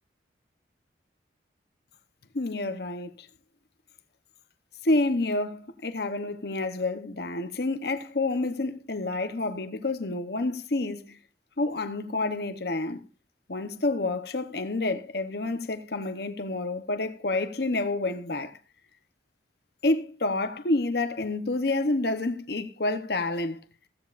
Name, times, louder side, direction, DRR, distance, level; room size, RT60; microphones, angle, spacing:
voice 1, 2.3-3.3 4.8-11.2 11.6-13.0 13.5-18.6 19.8-23.6, left 2 dB, 55° left, 0.9 m, -28 dB
15.5 x 15.0 x 2.5 m
head